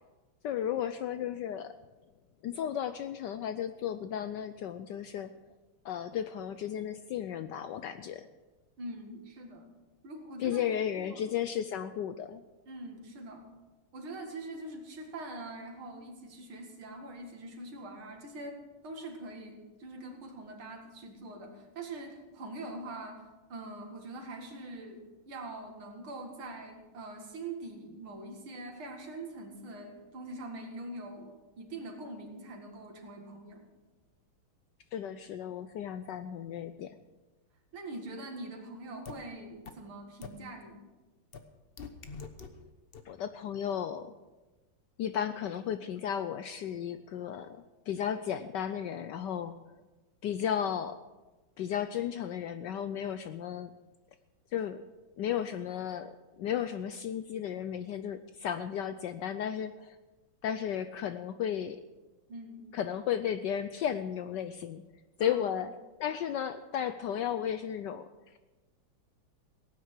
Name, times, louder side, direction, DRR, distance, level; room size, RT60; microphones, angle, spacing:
voice 1, 0.4-1.7 2.4-5.3 5.8-8.3 10.4-12.4 34.9-37.0 43.1-44.1 45.0-49.5 50.2-51.0 51.6-53.7 54.5-54.8 55.2-56.1 56.4-60.0 60.4-61.8 62.7-64.8 65.2-65.7 66.0-68.1, left 9 dB, 75° left, 11 dB, 1.0 m, -34 dB
voice 2, 8.8-9.7 10.0-10.6 11.0-11.2 12.7-13.5 13.9-33.7 37.7-40.9 62.3-62.7 65.2-65.4, right 2 dB, 75° right, 3 dB, 2.9 m, -43 dB
sound 1, 39.1-39.2 39.7-39.8 40.2-40.3 41.3-41.4 41.8-42.5 42.9-43.0, left 5 dB, 40° left, 0.8 m, -42 dB
17.0 x 9.5 x 6.5 m, 1.2 s
omnidirectional pair, 2.3 m